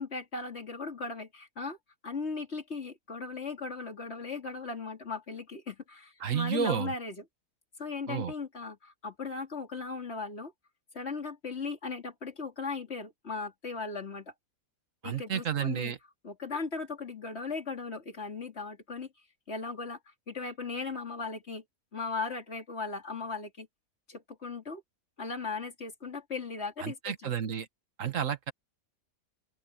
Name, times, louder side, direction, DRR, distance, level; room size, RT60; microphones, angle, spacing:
voice 1, 0.0-1.8 2.0-7.3 7.8-10.5 10.9-14.3 15.0-15.9 16.2-19.1 19.5-20.0 20.3-21.6 21.9-23.7 24.1-24.8 25.2-27.3, left 4 dB, 50° left, 3.1 m, -37 dB
voice 2, 6.2-6.9 8.1-8.3 15.0-16.0 26.8-27.7 28.0-28.5, right 8 dB, 60° right, 1.7 m, -31 dB
open air
omnidirectional pair, 1.5 m